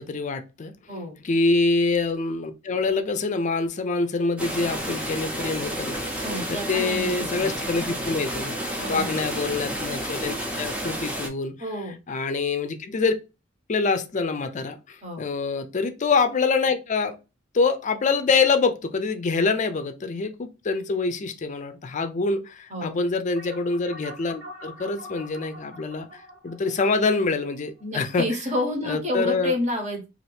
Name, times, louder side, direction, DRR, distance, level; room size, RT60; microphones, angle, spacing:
voice 1, 0.0-0.7 1.2-6.0 6.5-8.5 8.9-11.6 12.1-13.1 13.7-17.1 17.5-28.3 28.8-29.5, left 4 dB, 40° left, 0.4 m, -25 dB
sound 1, 4.4-11.3, equal, 5° right, 0.6 m, -31 dB
voice 2, 6.2-7.5 8.8-9.2 11.6-12.0 15.0-15.2 22.7-23.0 27.8-30.1, left 1 dB, 35° right, 0.9 m, -29 dB
sound 2, 23.4-28.2, left 1 dB, 70° right, 1.4 m, -44 dB
2.7 x 2.5 x 3.3 m
head